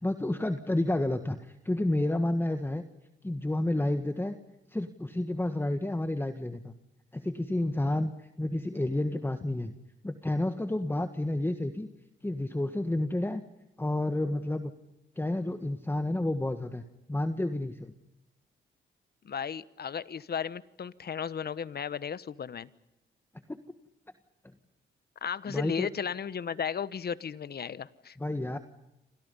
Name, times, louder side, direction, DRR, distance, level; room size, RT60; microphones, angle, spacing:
voice 1, 0.0-2.8 3.2-4.4 4.7-6.7 7.1-8.1 8.4-9.7 10.0-11.9 12.2-13.4 13.8-14.7 15.2-16.8 17.1-17.9 23.5-23.6 25.5-25.9 28.2-28.6, left 1 dB, 10° left, 8 dB, 1.6 m, -30 dB
voice 2, 19.2-22.7 25.2-28.2, left 7 dB, 50° left, 16 dB, 1.2 m, -35 dB
29.0 x 25.5 x 5.5 m, 0.89 s
supercardioid pair, 65°, 21 cm